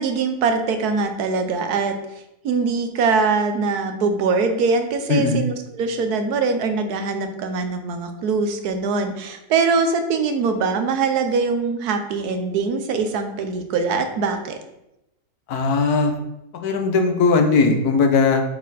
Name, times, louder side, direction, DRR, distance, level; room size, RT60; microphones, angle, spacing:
voice 1, 0.0-2.0 2.4-14.6, right 4 dB, 85° right, 7 dB, 1.3 m, -22 dB
voice 2, 5.1-5.4 15.5-16.1 16.5-18.4, left 4 dB, 80° left, 4 dB, 1.4 m, -18 dB
7.3 x 4.2 x 4.1 m, 0.86 s
omnidirectional pair, 1.6 m